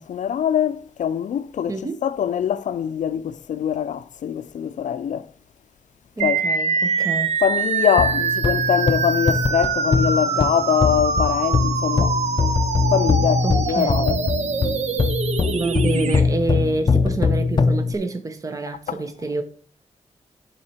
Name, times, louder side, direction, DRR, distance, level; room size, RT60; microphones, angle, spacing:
voice 1, 0.0-1.7 2.0-5.3 6.2-6.4 7.4-12.2 12.9-14.2 18.9-19.0, left 9 dB, 90° left, 0.4 m, -23 dB
voice 2, 1.7-2.0 6.2-7.3 13.4-14.0 15.5-19.4, right 2 dB, 25° right, 0.8 m, -27 dB
sound 1, 6.2-16.2, right 5 dB, 65° right, 0.8 m, -24 dB
sound 2, 8.0-17.9, left 4 dB, 40° left, 0.5 m, -22 dB
10.5 x 4.3 x 4.3 m
wide cardioid pair, 125°, 12 cm